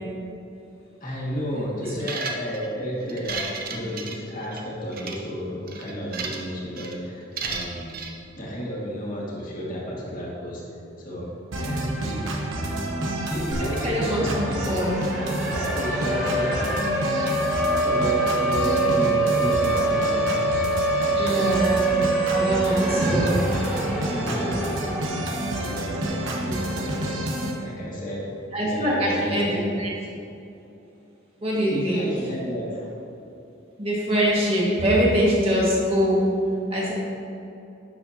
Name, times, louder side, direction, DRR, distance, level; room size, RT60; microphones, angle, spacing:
voice 1, 1.0-7.9 8.3-10.7 11.0-11.3 11.6-13.0 13.3-14.8 15.4-16.9 17.8-20.6 21.1-21.6 22.1-22.2 22.7-23.4 23.7-25.3 25.6-27.3 27.6-28.3 28.6-29.9 31.7-32.9, equal, 45° left, -5 dB, 1.9 m, -32 dB
sound 1, 2.0-2.7 3.1-4.6 4.9-5.2 5.7-6.5 6.8-7.0 7.4-8.1, right 4 dB, 50° right, 0.7 m, -33 dB
sound 2, 11.5-27.5, right 1 dB, 85° right, 1.1 m, -29 dB
voice 2, 13.8-14.3 14.7-15.0 16.1-16.3 21.2-21.8 22.3-23.4 28.5-29.5 29.8-29.9 31.4-32.1 33.8-36.2 36.7-36.9, equal, 30° right, -5 dB, 1.8 m, -23 dB
Siren, 13.9-26.0, right 2 dB, 5° right, 1.2 m, -25 dB
11.0 x 6.8 x 2.8 m, 2.8 s
head